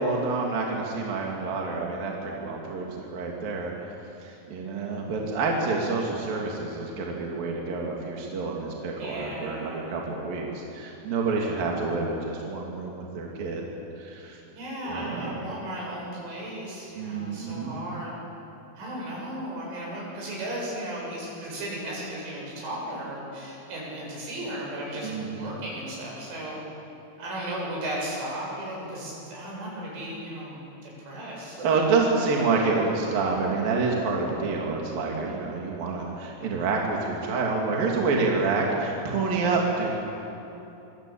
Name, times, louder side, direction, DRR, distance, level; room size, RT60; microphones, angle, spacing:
voice 1, 0.0-3.9 4.2-13.6 14.0-14.4 14.8-15.4 17.0-17.9 25.0-25.6 31.6-39.9, right 4 dB, 50° right, -1 dB, 3.9 m, -28 dB
voice 2, 9.0-9.9 14.5-18.2 18.8-26.6 27.2-31.7, right 1 dB, 70° right, -3 dB, 10.0 m, -35 dB
25.5 x 24.5 x 8.7 m, 3.0 s
omnidirectional pair, 5.8 m